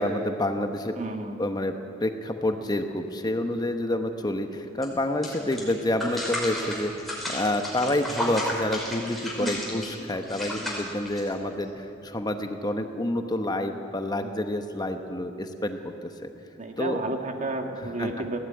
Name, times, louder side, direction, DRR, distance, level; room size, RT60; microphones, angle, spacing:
voice 1, 0.0-1.0 1.4-1.7 2.0-16.3 16.8-17.0 18.0-18.1, left 1 dB, 20° left, 6 dB, 1.0 m, -28 dB
voice 2, 1.0-1.4 9.4-9.7 16.6-18.4, right 2 dB, 40° right, 4 dB, 2.0 m, -31 dB
sound 1, 4.8-4.9 5.2-11.6, left 1 dB, ahead, 5.3 m, -33 dB
20.5 x 16.5 x 9.5 m, 2.7 s
head